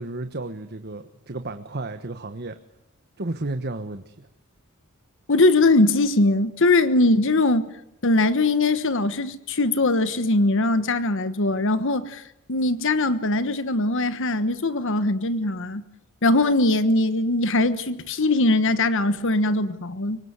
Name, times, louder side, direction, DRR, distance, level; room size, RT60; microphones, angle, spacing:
voice 1, 0.0-2.6 3.2-4.3, right 2 dB, 50° right, 1.3 m, -32 dB
voice 2, 5.3-7.6 8.0-15.8 16.2-20.2, left 2 dB, 60° left, 1.3 m, -21 dB
25.5 x 23.5 x 8.2 m
head